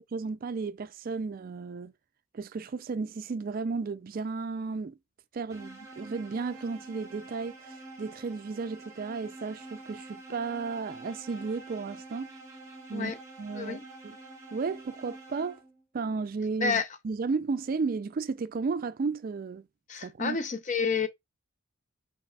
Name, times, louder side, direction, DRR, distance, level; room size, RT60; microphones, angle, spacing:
voice 1, 0.1-1.9 2.3-5.0 5.3-12.3 12.9-13.1 13.4-14.2 14.5-15.6 15.9-19.7 20.0-20.4, right 4 dB, 45° right, 0.3 m, -34 dB
sound 1, 5.5-15.8, right 2 dB, 15° right, 1.2 m, -47 dB
voice 2, 13.5-13.9 16.6-16.9 19.9-21.1, left 5 dB, 35° left, 0.7 m, -29 dB
5.6 x 4.0 x 2.3 m
head